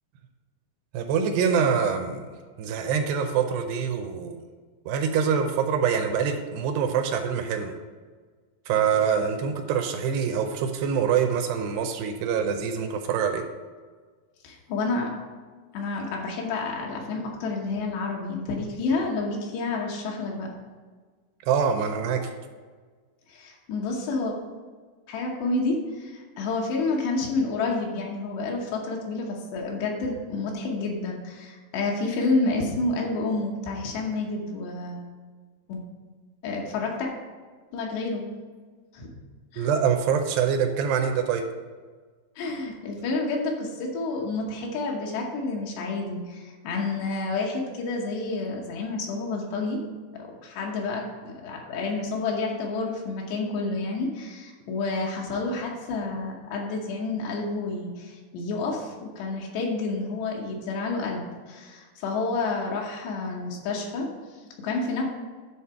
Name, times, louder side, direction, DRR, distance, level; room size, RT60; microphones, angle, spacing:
voice 1, 0.9-2.2 2.6-4.4 4.9-7.7 8.7-13.4 21.5-22.2 39.6-41.4, right 7 dB, 80° right, 6 dB, 2.6 m, -25 dB
voice 2, 14.4-15.1 15.7-20.5 23.3-24.3 25.1-35.0 35.7-35.8 36.4-37.1 37.7-38.2 38.9-39.1 39.5-39.7 42.4-49.8 50.4-65.0, left 3 dB, 80° left, -1 dB, 3.1 m, -29 dB
10.5 x 3.9 x 5.7 m, 1.5 s
omnidirectional pair, 5.0 m